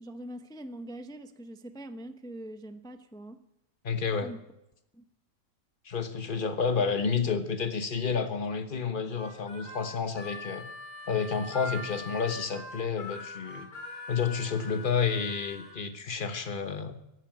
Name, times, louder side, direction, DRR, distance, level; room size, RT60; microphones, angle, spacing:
voice 1, 0.0-3.4 4.2-4.4 4.9-5.0, right 1 dB, 5° left, 8 dB, 0.5 m, -43 dB
voice 2, 3.8-4.3 5.8-10.6 11.1-13.7 14.1-16.9, left 5 dB, 35° left, 8 dB, 1.3 m, -30 dB
Harmonica, 9.1-15.7, left 2 dB, 85° left, 4.5 m, -42 dB
15.5 x 9.7 x 9.1 m, 0.88 s
omnidirectional pair, 1.6 m